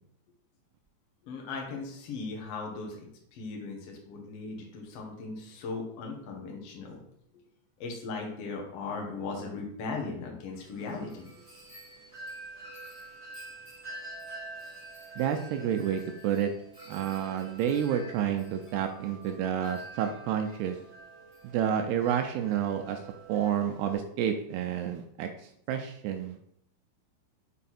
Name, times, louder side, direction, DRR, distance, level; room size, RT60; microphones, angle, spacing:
voice 1, 1.2-7.0 7.8-11.3, left 4 dB, 85° left, 0 dB, 1.3 m, -38 dB
Wind chime, 10.5-23.9, right 2 dB, 25° right, 0.8 m, -47 dB
voice 2, 15.2-16.5 16.9-20.8 21.5-23.0 23.3-25.3 25.7-26.4, right 9 dB, 85° right, 6 dB, 2.4 m, -29 dB
6.6 x 4.6 x 4.2 m, 0.72 s
omnidirectional pair, 5.2 m